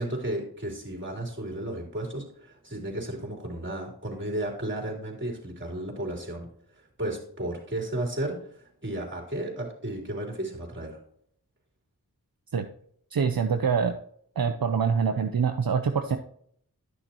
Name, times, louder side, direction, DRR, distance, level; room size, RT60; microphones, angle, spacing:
voice 1, 0.0-6.5 7.0-11.0, right 1 dB, 30° right, 0 dB, 3.7 m, -33 dB
voice 2, 13.1-14.0 14.4-16.2, right 6 dB, 70° right, 6 dB, 0.7 m, -25 dB
12.0 x 6.4 x 3.0 m, 0.65 s
wide cardioid pair, 45°, 37 cm